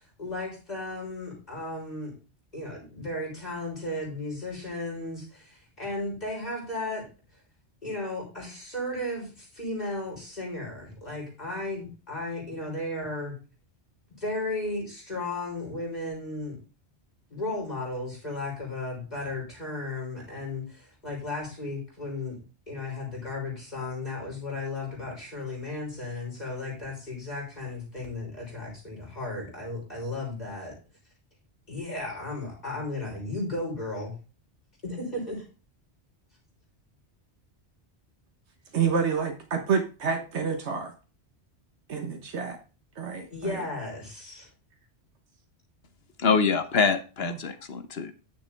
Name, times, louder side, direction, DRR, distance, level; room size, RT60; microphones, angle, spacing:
voice 1, 0.0-2.1 2.5-7.1 7.8-13.4 14.2-16.6 17.3-22.4 22.7-30.7 31.7-34.1 34.8-35.5 43.3-44.5, left 2 dB, 40° left, -3 dB, 3.7 m, -35 dB
voice 2, 38.7-40.9 41.9-42.6 43.0-43.6 47.2-47.4, right 6 dB, 80° right, 4 dB, 1.5 m, -28 dB
voice 3, 46.2-48.1, left 5 dB, 65° left, 9 dB, 1.2 m, -25 dB
10.5 x 6.3 x 3.4 m, 0.34 s
omnidirectional pair, 1.1 m